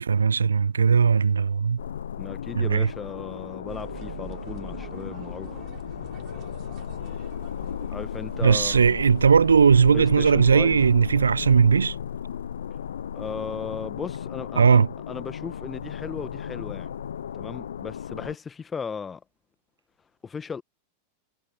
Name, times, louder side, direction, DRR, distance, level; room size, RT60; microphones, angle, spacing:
voice 1, 0.0-1.8 2.5-2.9 8.4-11.9 14.6-14.9, right 6 dB, 75° right, 0.8 m, -18 dB
sound 1, 1.8-18.4, left 9 dB, 65° left, 0.7 m, -35 dB
voice 2, 2.2-5.5 7.9-9.0 9.9-10.9 13.1-16.9 17.3-19.2 20.2-20.6, left 6 dB, 15° left, 1.7 m, -36 dB
sound 2, 3.7-10.8, right 17 dB, 35° right, 3.3 m, -44 dB
figure-of-eight pair, 90°, 0 cm